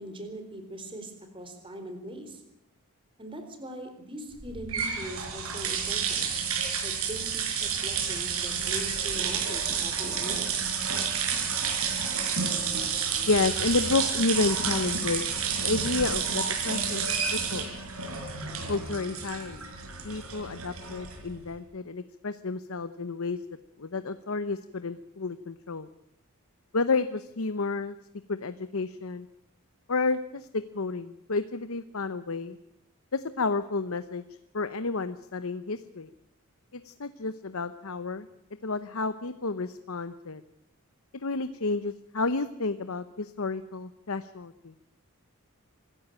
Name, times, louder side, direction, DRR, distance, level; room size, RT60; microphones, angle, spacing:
voice 1, 0.0-2.4 3.2-6.3 6.8-10.5, right 1 dB, 25° right, 6 dB, 4.0 m, -41 dB
sound 1, 4.4-21.4, right 6 dB, 75° right, 4.9 m, -30 dB
voice 2, 13.3-17.7 18.7-19.6 20.0-23.4 23.8-25.9 26.7-28.0 28.3-29.3 29.9-32.6 33.1-34.2 34.5-36.1 36.7-38.3 38.6-40.4 41.2-44.7, left 3 dB, 70° left, 11 dB, 0.9 m, -31 dB
25.0 x 14.0 x 8.8 m, 0.81 s
head